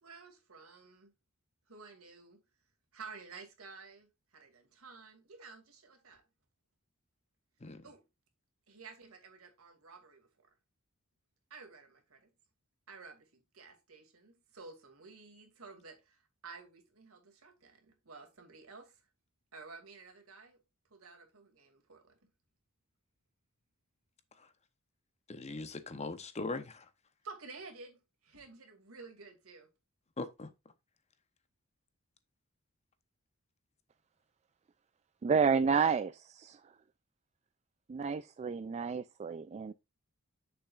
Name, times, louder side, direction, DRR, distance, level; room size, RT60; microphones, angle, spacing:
voice 1, 0.0-1.1 1.7-2.4 2.9-6.2 7.8-8.0 8.7-10.3 11.5-12.3 12.9-19.0 19.5-20.6 20.9-22.2 27.2-29.7, right 4 dB, 75° right, 2.4 m, -52 dB
voice 2, 25.3-26.9 30.2-30.5, left 3 dB, 30° left, 0.9 m, -40 dB
voice 3, 35.2-36.6 37.9-39.7, right 5 dB, 30° right, 0.3 m, -30 dB
8.4 x 6.9 x 2.5 m
head